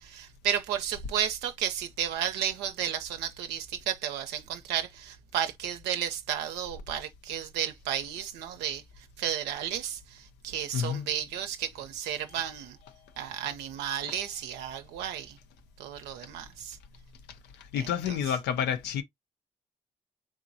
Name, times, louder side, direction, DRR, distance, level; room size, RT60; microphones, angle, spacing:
voice 1, 0.0-8.8 9.2-10.2 10.4-12.8 13.2-15.4 15.8-16.8 18.1-18.2, right 9 dB, 85° right, 0.4 m, -33 dB
voice 2, 10.7-11.1 14.0-14.1 17.6-19.0, left 8 dB, 85° left, 0.5 m, -29 dB
3.7 x 3.0 x 2.5 m
supercardioid pair, 50°, 17 cm